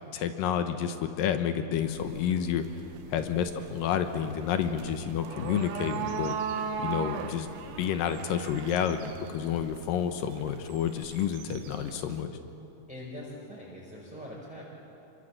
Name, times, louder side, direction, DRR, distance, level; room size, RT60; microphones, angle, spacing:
voice 1, 0.1-2.7 3.1-6.3 6.8-7.5 7.8-12.4, left 8 dB, 80° left, 8 dB, 2.0 m, -30 dB
sound 1, 1.8-12.2, right 7 dB, 80° right, 3.6 m, -39 dB
voice 2, 12.9-14.6, left 1 dB, ahead, -5 dB, 4.3 m, -43 dB
29.0 x 25.5 x 7.6 m, 2.8 s
omnidirectional pair, 5.5 m